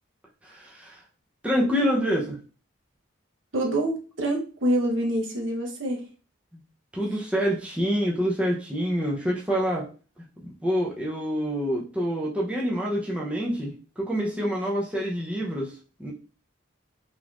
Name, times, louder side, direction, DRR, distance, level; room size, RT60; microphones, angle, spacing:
voice 1, 0.4-1.0 1.4-2.4 6.5-6.6 6.9-9.9 10.4-15.7 16.0-16.1, equal, 5° right, -4 dB, 0.6 m, -27 dB
voice 2, 3.5-6.0, right 1 dB, 80° right, 1 dB, 1.0 m, -26 dB
3.7 x 3.0 x 2.4 m, 0.36 s
head